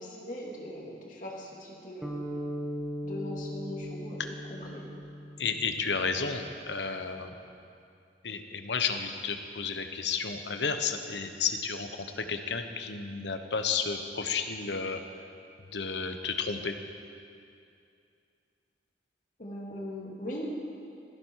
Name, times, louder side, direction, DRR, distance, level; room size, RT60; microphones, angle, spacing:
voice 1, 0.0-2.1 3.0-4.2 4.5-4.9 19.4-20.5, left 1 dB, 45° left, -2 dB, 2.7 m, -40 dB
sound 1, 2.0-6.3, equal, ahead, 1.4 m, -38 dB
voice 2, 5.4-7.3 8.2-11.9 12.2-15.0 15.7-16.7, left 5 dB, 80° left, 7 dB, 1.1 m, -32 dB
17.5 x 15.0 x 4.8 m, 2.5 s
head